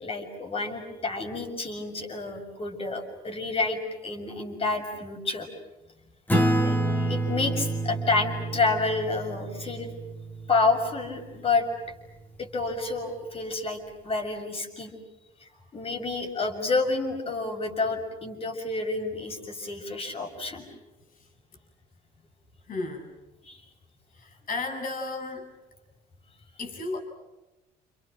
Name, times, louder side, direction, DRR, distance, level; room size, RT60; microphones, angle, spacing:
voice 1, 0.0-5.5 6.6-9.9 10.5-11.7 12.4-14.9 15.4-20.7 23.4-23.6, left 3 dB, 35° left, 3 dB, 6.6 m, -29 dB
Acoustic guitar / Strum, 6.3-11.3, right 1 dB, 10° left, 3.0 m, -28 dB
voice 2, 22.7-23.1 24.2-25.5 26.6-27.0, left 3 dB, 55° left, 3 dB, 7.1 m, -34 dB
30.0 x 29.5 x 6.3 m, 1.0 s
cardioid pair, 110°, 17 cm